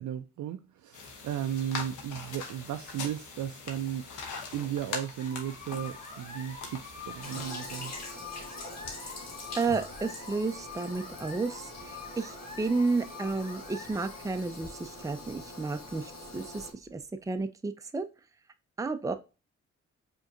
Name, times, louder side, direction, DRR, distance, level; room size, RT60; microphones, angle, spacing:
voice 1, 0.0-4.1 4.5-8.0, right 10 dB, 75° right, 0.4 m, -35 dB
sound 1, 0.9-7.5, left 4 dB, 85° left, 0.9 m, -42 dB
sound 2, 5.2-17.4, left 4 dB, 25° left, 1.3 m, -46 dB
Toilet flush, 7.2-16.7, left 2 dB, 60° left, 1.2 m, -44 dB
voice 2, 9.5-17.0 17.3-18.1 18.8-19.1, right 3 dB, 10° right, 0.5 m, -32 dB
4.9 x 3.0 x 2.6 m
supercardioid pair, 45°, 30 cm